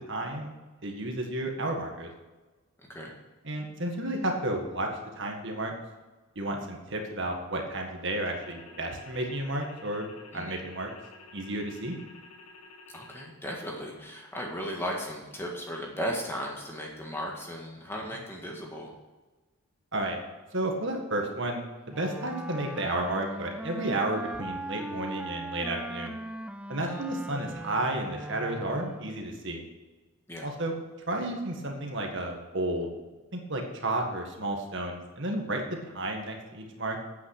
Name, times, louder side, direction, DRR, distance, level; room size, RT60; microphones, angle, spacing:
voice 1, 0.1-0.6 0.8-2.1 3.4-4.9 5.2-5.7 6.4-10.1 10.3-10.9 11.3-12.0 19.9-20.2 20.5-26.2 26.7-29.6 30.4-30.7 31.1-32.9 33.3-37.0, right 1 dB, 55° right, 2 dB, 1.8 m, -32 dB
voice 2, 2.8-3.1 10.3-10.6 12.9-18.9 26.8-27.0 30.3-30.5, equal, 10° left, -1 dB, 1.9 m, -36 dB
sound 1, 8.2-13.3, left 3 dB, 75° left, 1.5 m, -51 dB
Wind instrument woodwind instrument, 21.9-29.3, right 1 dB, 5° right, 0.4 m, -39 dB
9.4 x 8.7 x 6.6 m, 1.2 s
head